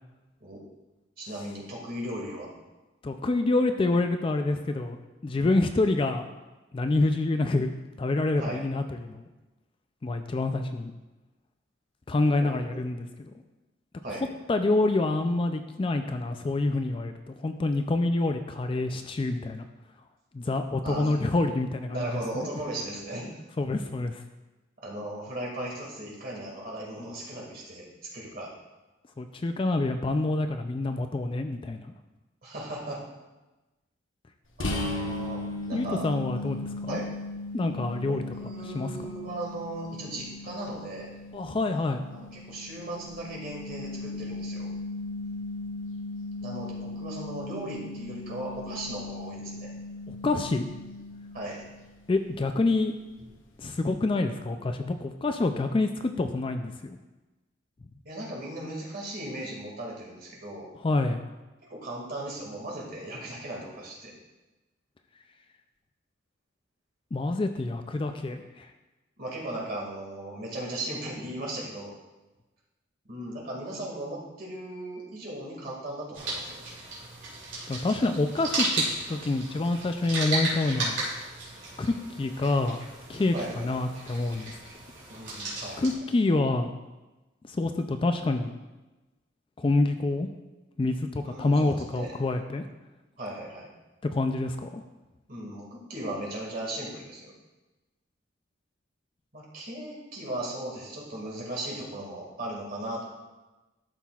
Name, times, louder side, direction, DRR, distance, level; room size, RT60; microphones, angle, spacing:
voice 1, 1.2-2.5 8.4-8.6 12.4-12.8 14.0-14.2 20.8-21.1 21.9-23.3 24.8-27.9 28.1-28.5 32.4-33.1 34.6-36.1 36.9-37.1 38.0-41.1 42.1-44.7 46.4-49.7 51.3-51.6 58.0-60.7 61.6-64.1 69.2-71.9 73.1-76.6 83.3-83.7 85.1-86.0 91.2-92.1 93.2-93.7 95.3-97.3 99.3-103.0, right 1 dB, 50° right, -3 dB, 2.0 m, -37 dB
voice 2, 3.0-5.0 5.2-6.2 6.7-9.2 10.0-10.9 12.1-13.3 14.5-19.7 20.3-22.2 23.6-24.2 29.2-31.9 35.7-37.0 37.5-38.2 38.7-38.9 41.3-42.0 50.1-50.6 52.1-52.9 53.6-57.0 60.8-61.2 67.1-68.7 77.7-81.0 81.8-82.8 83.1-84.6 85.8-86.7 87.4-88.5 89.6-90.3 90.8-92.6 94.1-94.8, left 2 dB, 25° left, 7 dB, 0.3 m, -27 dB
sound 1, 34.6-52.1, left 2 dB, 80° left, 0.9 m, -37 dB
sound 2, 76.1-85.9, right 2 dB, 70° right, 2.7 m, -34 dB
12.5 x 5.8 x 2.4 m, 1.1 s
head